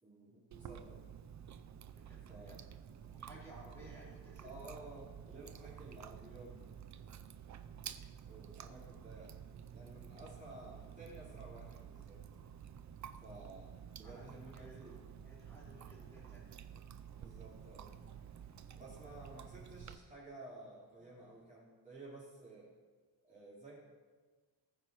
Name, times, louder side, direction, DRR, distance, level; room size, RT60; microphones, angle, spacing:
voice 1, 0.0-1.1 2.3-2.7 4.4-6.8 8.3-9.4 9.7-12.2 13.2-15.0 17.1-17.9 18.7-22.7 23.3-23.8, right 2 dB, 15° right, -8 dB, 3.8 m, -53 dB
Chewing mastication, 0.5-20.0, right 8 dB, 40° right, 0.5 m, -51 dB
sound 1, 1.7-20.2, right 5 dB, 70° right, 1.3 m, -73 dB
voice 2, 1.9-2.5 3.1-4.5 7.7-7.8 14.0-14.8 15.2-16.4, right 1 dB, 5° left, -8 dB, 3.6 m, -57 dB
sound 2, 4.7-21.5, left 2 dB, 80° left, 3.2 m, -75 dB
20.0 x 9.4 x 3.0 m, 1.5 s
cardioid pair, 155°, 47 cm